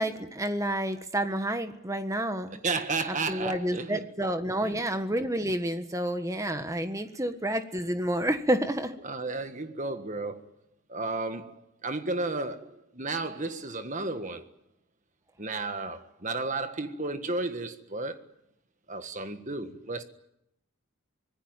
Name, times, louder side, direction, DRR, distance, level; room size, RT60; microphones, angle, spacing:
voice 1, 0.0-2.6 3.3-8.9, right 1 dB, 15° right, 1.5 m, -29 dB
voice 2, 2.6-4.1 4.6-4.8 7.3-7.4 9.0-10.5 10.9-14.5 15.4-18.2 18.9-20.0, right 3 dB, 35° right, 1.6 m, -33 dB
25.0 x 20.0 x 9.1 m
head